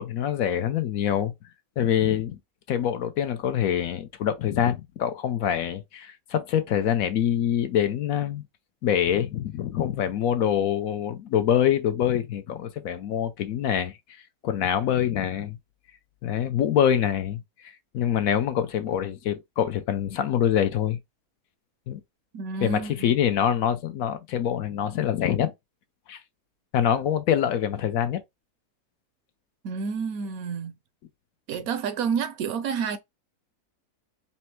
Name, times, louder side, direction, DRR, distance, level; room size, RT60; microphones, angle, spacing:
voice 1, 0.0-1.3 1.8-2.4 2.7-8.4 8.8-13.9 14.4-15.6 16.2-21.0 21.9-22.0 22.6-25.5 26.1-26.2 26.7-28.2, left 9 dB, 70° left, 1.0 m, -25 dB
voice 2, 22.3-23.2 29.6-30.7 31.5-33.0, right 6 dB, 70° right, 1.0 m, -29 dB
4.3 x 2.1 x 4.3 m
omnidirectional pair, 1.6 m